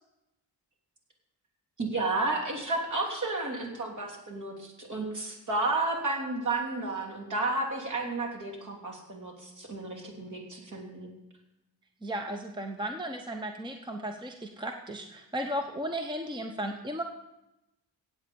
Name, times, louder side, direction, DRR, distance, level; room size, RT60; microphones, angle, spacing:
voice 1, 1.8-11.1, right 2 dB, 45° right, 0 dB, 3.2 m, -32 dB
voice 2, 12.0-17.0, equal, 10° right, 4 dB, 0.8 m, -35 dB
16.0 x 8.6 x 5.3 m, 0.93 s
wide cardioid pair, 125°, 41 cm